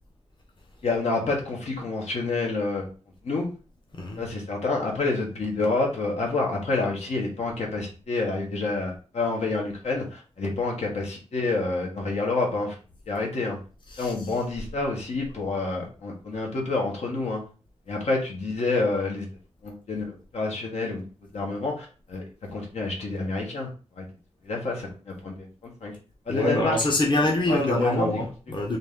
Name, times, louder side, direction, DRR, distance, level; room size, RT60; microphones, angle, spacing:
voice 1, 0.8-2.9 3.2-3.5 4.2-12.7 13.1-13.6 14.0-17.4 17.9-19.2 19.6-21.0 21.3-22.2 22.5-23.7 24.0-24.1 24.4-24.9 25.2-25.5 25.8-25.9 26.3-26.8 27.5-28.2, left 3 dB, 75° left, 1.2 m, -28 dB
voice 2, 13.9-14.4 26.3-28.8, left 1 dB, 45° left, 1.0 m, -25 dB
4.1 x 2.6 x 3.6 m
cardioid pair, 80°, 11 cm